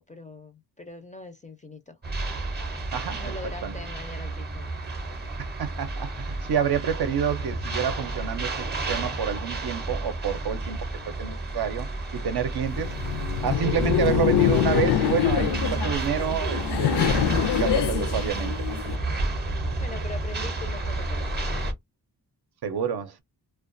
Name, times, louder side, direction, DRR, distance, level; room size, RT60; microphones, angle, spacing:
voice 1, 0.0-2.0 3.2-4.7 19.8-21.8, left 3 dB, 20° left, 0.4 m, -42 dB
sound 1, 2.0-21.7, right 2 dB, 25° right, 0.6 m, -31 dB
voice 2, 2.9-3.3 3.6-3.7 5.4-10.8 11.1-11.9 12.1-12.9 13.4-17.1 17.6-18.8 22.6-23.2, right 8 dB, 65° right, 0.5 m, -28 dB
Laughter, 12.7-19.0, left 11 dB, 75° left, 0.5 m, -25 dB
2.2 x 2.2 x 2.4 m
wide cardioid pair, 160°, 41 cm